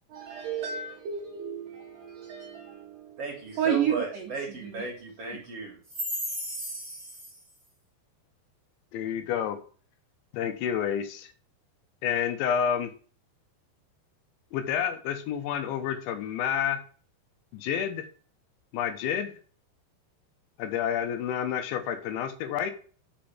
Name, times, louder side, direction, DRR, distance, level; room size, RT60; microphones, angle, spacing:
voice 1, 0.1-4.9 5.2-5.4, right 8 dB, 75° right, 2.0 m, -32 dB
voice 2, 3.2-7.1, right 2 dB, 50° right, 2.0 m, -35 dB
voice 3, 8.9-9.6 10.3-11.3 12.0-12.9 14.5-16.8 17.5-18.1 18.7-19.4 20.6-22.7, left 8 dB, 80° left, 3.3 m, -29 dB
6.8 x 5.3 x 7.1 m
omnidirectional pair, 5.2 m